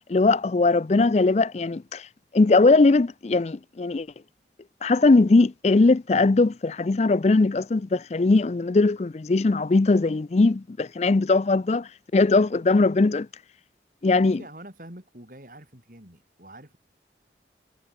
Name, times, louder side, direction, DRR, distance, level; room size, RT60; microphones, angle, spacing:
voice 1, 0.1-2.1 2.3-4.1 4.8-13.3 14.0-14.4, left 3 dB, 40° left, 0.4 m, -20 dB
voice 2, 14.4-16.8, right 1 dB, 50° right, 6.0 m, -45 dB
head